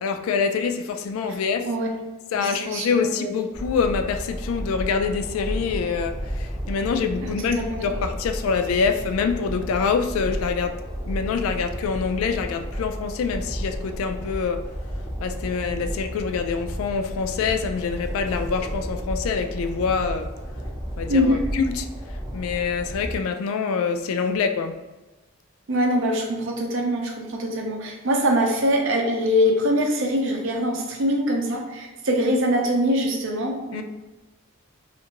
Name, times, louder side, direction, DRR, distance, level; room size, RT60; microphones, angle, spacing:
voice 1, 0.0-1.7 2.3-10.8 11.0-14.6 15.2-20.3 21.0-21.9 22.3-24.8 33.7-33.8, left 5 dB, 85° left, 8 dB, 0.3 m, -25 dB
voice 2, 2.3-3.3 7.2-7.9 21.1-21.4 25.7-33.8, equal, 65° right, 1 dB, 0.5 m, -23 dB
Train, 3.5-23.2, equal, 15° right, 0.4 m, -32 dB
2.5 x 2.5 x 2.8 m, 1.1 s
head